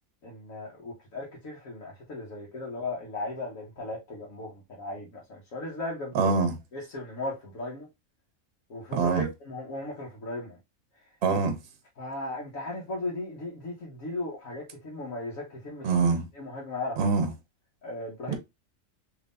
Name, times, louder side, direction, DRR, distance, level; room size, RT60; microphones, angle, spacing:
voice 1, 0.2-6.3 6.7-7.9 8.7-10.6 12.0-15.9 16.3-17.0 17.8-18.3, left 2 dB, 85° left, 1.5 m, -37 dB
voice 2, 6.1-6.6 8.9-9.3 11.2-11.5 15.8-16.2 17.0-17.3 18.3-18.4, right 4 dB, 55° right, 1.0 m, -24 dB
3.6 x 3.3 x 2.5 m
omnidirectional pair, 1.4 m